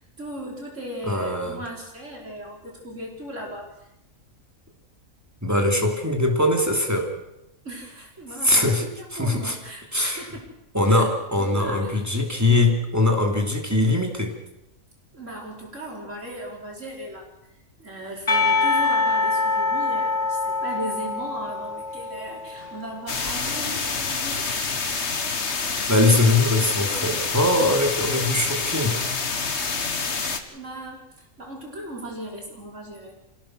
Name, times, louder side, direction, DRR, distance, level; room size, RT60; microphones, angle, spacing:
voice 1, 0.0-3.7 7.6-10.4 10.9-11.1 11.4-12.0 15.1-17.3 17.8-24.7 30.5-33.1, right 1 dB, 60° right, -1 dB, 5.6 m, -37 dB
voice 2, 1.0-1.6 5.4-7.1 8.4-8.8 9.1-9.5 9.9-10.3 10.7-14.4 25.9-29.0, left 2 dB, 10° right, 2 dB, 2.9 m, -21 dB
Percussion, 18.3-23.1, left 3 dB, 30° left, 2.3 m, -24 dB
sound 1, 23.1-30.4, left 4 dB, 55° left, 1.8 m, -27 dB
27.5 x 16.5 x 6.3 m, 0.87 s
omnidirectional pair, 1.4 m